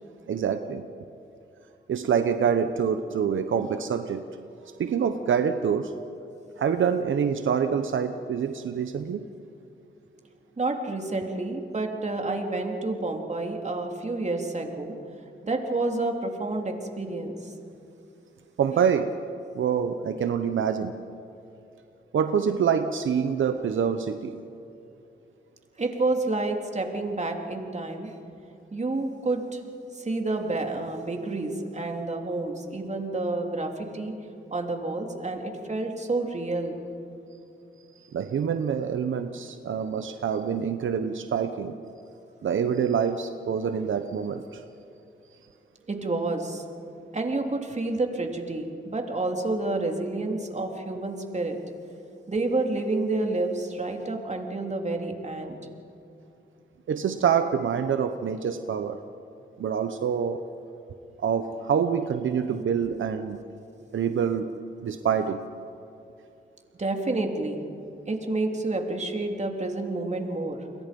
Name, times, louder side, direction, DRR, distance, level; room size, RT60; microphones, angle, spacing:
voice 1, 0.3-0.9 1.9-4.3 4.8-5.9 6.6-9.2 18.6-19.1 19.5-21.0 22.1-24.3 38.1-41.7 42.4-44.6 56.9-59.0 59.6-60.4 61.2-63.4 63.9-65.4, right 7 dB, 80° right, 8 dB, 0.9 m, -26 dB
voice 2, 10.6-14.9 15.4-17.5 25.8-28.1 28.7-34.1 34.5-36.8 45.9-46.6 47.1-51.6 52.3-55.6 66.8-67.7 68.1-70.6, right 2 dB, 35° right, 2 dB, 3.4 m, -29 dB
30.0 x 23.0 x 5.4 m, 2.7 s
cardioid pair, 65°, 20 cm